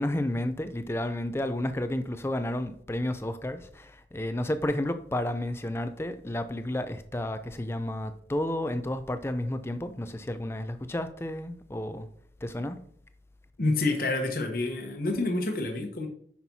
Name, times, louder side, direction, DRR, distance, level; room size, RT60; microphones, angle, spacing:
voice 1, 0.0-12.1 12.4-12.8, left 1 dB, 15° left, 0.4 m, -31 dB
voice 2, 13.6-16.1, left 2 dB, 50° left, 1.0 m, -28 dB
9.0 x 5.8 x 2.7 m
head